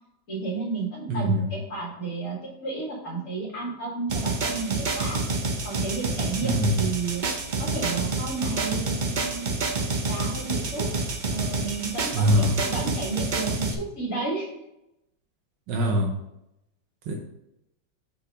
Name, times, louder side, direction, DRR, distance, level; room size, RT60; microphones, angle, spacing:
voice 1, 0.3-5.2 5.6-7.2 7.6-9.6 10.1-10.9 11.3-14.6, right 3 dB, 50° left, -5 dB, 2.2 m, -32 dB
voice 2, 1.1-1.5 6.4-6.8 12.1-12.6 15.7-16.1 17.1-17.2, equal, 85° right, 1 dB, 1.5 m, -23 dB
sound 1, 4.1-13.7, right 3 dB, 65° right, 0.4 m, -28 dB
5.5 x 4.4 x 5.0 m, 0.86 s
omnidirectional pair, 1.9 m